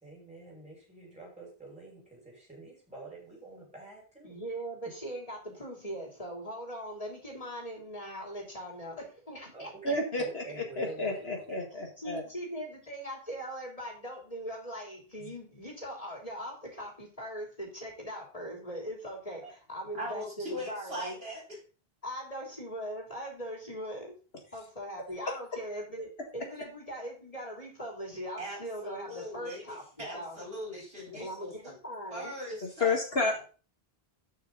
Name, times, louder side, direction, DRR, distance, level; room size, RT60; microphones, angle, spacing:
voice 1, 0.0-4.3 9.5-11.6, right 3 dB, 5° right, -2 dB, 5.8 m, -46 dB
voice 2, 4.2-9.9 12.0-21.2 22.0-24.1 24.5-29.8 30.1-30.4 31.2-32.3, equal, 35° left, 0 dB, 3.6 m, -40 dB
voice 3, 9.8-12.2 15.2-15.3 32.8-33.4, left 3 dB, 75° left, 2 dB, 2.3 m, -31 dB
voice 4, 19.9-21.6 28.4-31.7 32.1-32.9, equal, 70° right, -2 dB, 4.8 m, -40 dB
13.0 x 6.5 x 4.0 m, 0.36 s
omnidirectional pair, 1.0 m